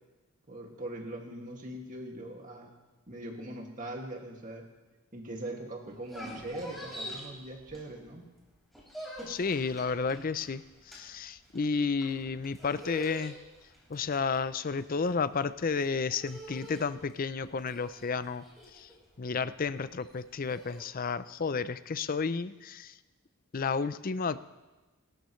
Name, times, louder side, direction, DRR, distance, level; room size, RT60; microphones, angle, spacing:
voice 1, 0.5-2.7 3.1-4.7 5.1-8.3, right 1 dB, 40° right, 1 dB, 2.2 m, -41 dB
sound 1, 5.9-8.2 8.5-20.8, equal, ahead, 5.1 m, -46 dB
voice 2, 9.3-13.4 13.9-18.4 18.7-18.9 19.2-22.9 23.5-24.4, left 5 dB, 40° left, 15 dB, 0.5 m, -32 dB
28.0 x 13.5 x 3.2 m, 1.2 s
head